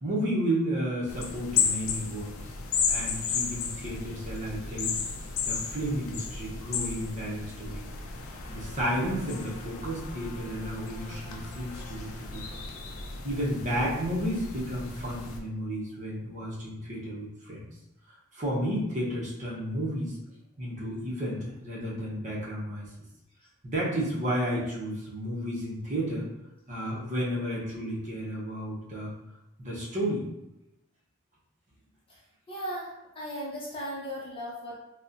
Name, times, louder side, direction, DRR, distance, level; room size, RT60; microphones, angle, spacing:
voice 1, 0.0-2.5 2.9-4.9 5.4-7.8 8.5-12.6 13.2-17.6 18.3-20.2 20.6-22.9 23.6-26.3 26.7-29.1 29.6-30.2, equal, 35° right, -6 dB, 0.8 m, -32 dB
sound 1, 1.1-15.4, left 5 dB, 85° left, 0.4 m, -34 dB
voice 2, 32.5-34.8, equal, 25° left, -5 dB, 0.7 m, -37 dB
4.1 x 2.1 x 2.5 m, 0.90 s
head